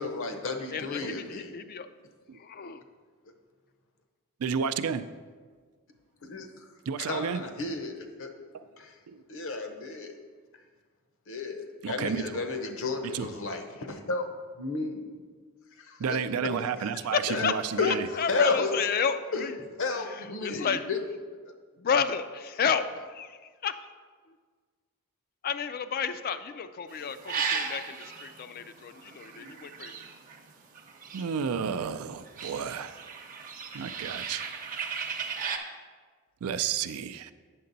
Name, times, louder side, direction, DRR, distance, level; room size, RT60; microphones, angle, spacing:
voice 1, 0.0-1.5 6.2-6.7 7.0-8.3 8.8-9.0 9.3-10.2 11.3-14.3 14.6-15.0 15.8-16.2 16.6-16.7 17.1-17.5 17.8-18.7 19.3-19.5 19.8-21.0, left 3 dB, 60° left, 5 dB, 0.9 m, -32 dB
voice 2, 0.7-1.9 2.3-2.8 16.9-17.5 17.8-19.5 20.2-20.8 21.8-23.7 25.4-29.9, left 6 dB, 45° left, 11 dB, 0.4 m, -31 dB
voice 3, 4.4-5.0 6.9-7.4 8.5-8.6 9.1-9.2 11.8-12.3 13.0-13.3 16.0-18.1 31.1-33.0 33.7-34.5 36.4-37.3, right 7 dB, 75° right, 12 dB, 0.4 m, -31 dB
sound 1, 26.9-31.7 31.9-35.6, right 6 dB, 40° right, 0.7 m, -36 dB
8.6 x 6.6 x 4.0 m, 1.6 s
head